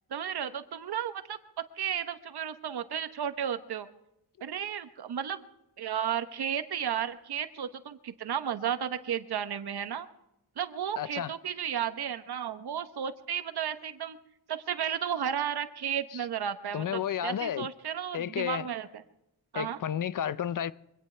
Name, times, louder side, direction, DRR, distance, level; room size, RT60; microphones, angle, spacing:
voice 1, 0.1-1.4 1.8-3.9 4.4-5.4 5.8-10.1 10.6-14.2 14.5-18.9 19.5-19.8, right 9 dB, 70° right, 1.1 m, -33 dB
voice 2, 11.0-11.3 16.1-16.3 16.7-17.7 18.1-18.7 19.5-20.7, left 9 dB, 50° left, 0.5 m, -32 dB
23.5 x 17.5 x 3.4 m
wide cardioid pair, 130°, 40 cm